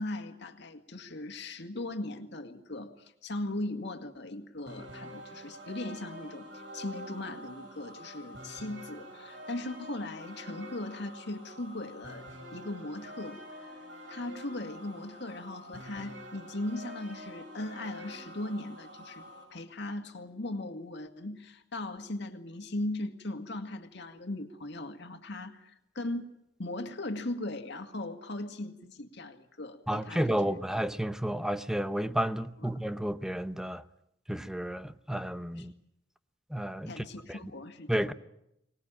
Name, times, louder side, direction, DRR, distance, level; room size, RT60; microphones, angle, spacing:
voice 1, 0.0-13.8 14.1-19.2 19.5-26.3 26.6-30.6 35.5-35.6 36.9-37.9, left 1 dB, 65° left, 2.1 m, -38 dB
sound 1, 4.7-19.4, equal, 70° right, 7.6 m, -47 dB
voice 2, 29.9-33.8 34.3-35.7 36.5-37.5 37.9-38.1, equal, 5° right, 0.9 m, -32 dB
24.5 x 19.5 x 8.9 m
head